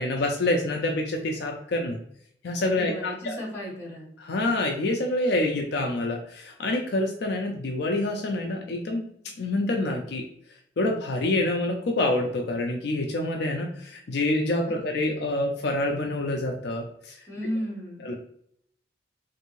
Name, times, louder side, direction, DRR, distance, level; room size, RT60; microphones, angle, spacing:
voice 1, 0.0-2.0 2.4-3.4 4.2-9.0 9.4-10.3 10.8-17.1 18.0-18.1, left 2 dB, 60° left, 2 dB, 0.4 m, -27 dB
voice 2, 2.7-4.1 14.6-14.8 17.3-18.1, equal, 15° left, -6 dB, 1.3 m, -34 dB
3.4 x 2.6 x 3.0 m, 0.70 s
head